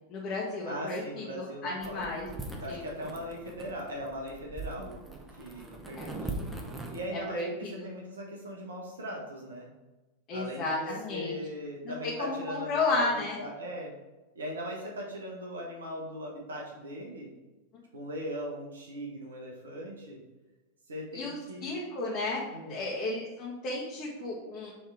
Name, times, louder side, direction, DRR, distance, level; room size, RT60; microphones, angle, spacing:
voice 1, 0.1-2.3 2.7-2.8 4.8-4.9 6.0-6.1 7.1-7.9 10.3-11.4 11.8-13.4 21.1-22.4 22.7-24.7, left 3 dB, 35° left, -5 dB, 1.3 m, -33 dB
voice 2, 0.6-2.2 2.6-4.9 5.3-6.3 6.9-9.7 10.3-13.9 14.3-17.3 17.9-20.2 20.9-21.7 22.5-22.8, equal, 70° right, -1 dB, 1.2 m, -39 dB
sound 1, 1.8-7.1, right 2 dB, 10° right, 0.9 m, -41 dB
6.9 x 3.5 x 4.7 m, 1.1 s
figure-of-eight pair, 90°, 0 cm